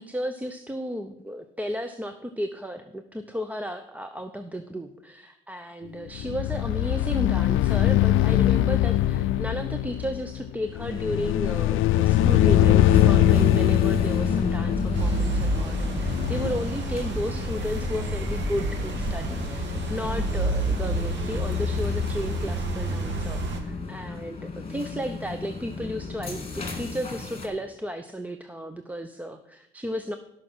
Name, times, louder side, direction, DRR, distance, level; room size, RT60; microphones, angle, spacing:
voice 1, 0.0-30.2, equal, 5° right, 7 dB, 0.8 m, -33 dB
sound 1, 6.1-16.5, left 13 dB, 85° left, 0.5 m, -22 dB
sound 2, 12.2-27.5, left 3 dB, 30° left, 2.6 m, -32 dB
sound 3, 14.9-23.6, right 1 dB, 65° right, 2.1 m, -29 dB
13.5 x 6.2 x 6.3 m, 0.83 s
cardioid pair, 90°, 20 cm